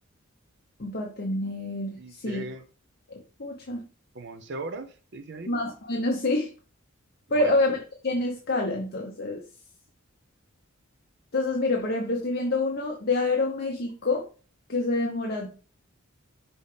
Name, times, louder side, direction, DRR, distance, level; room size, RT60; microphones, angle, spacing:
voice 1, 0.8-2.5 3.1-3.8 5.5-6.5 7.3-9.4 11.3-14.2 14.7-15.5, left 2 dB, 50° left, 0.9 m, -27 dB
voice 2, 2.0-2.6 4.1-5.5 7.4-7.6, right 2 dB, 55° right, 0.6 m, -38 dB
5.6 x 5.5 x 3.4 m
head